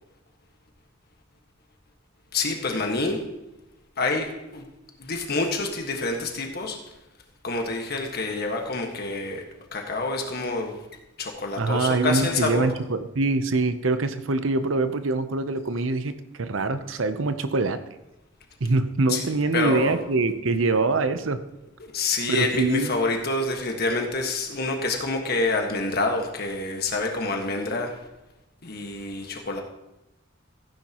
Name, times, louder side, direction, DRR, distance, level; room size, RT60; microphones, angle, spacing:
voice 1, 2.3-3.2 4.0-4.6 5.0-6.8 7.4-9.4 9.7-10.8 11.2-12.7 19.1-19.2 19.5-20.0 21.8-27.9 28.6-29.6, left 3 dB, 55° left, 3 dB, 1.6 m, -27 dB
voice 2, 11.6-17.8 18.6-21.4 22.3-22.9, right 3 dB, 85° right, 11 dB, 0.8 m, -24 dB
16.0 x 9.5 x 3.0 m, 0.96 s
head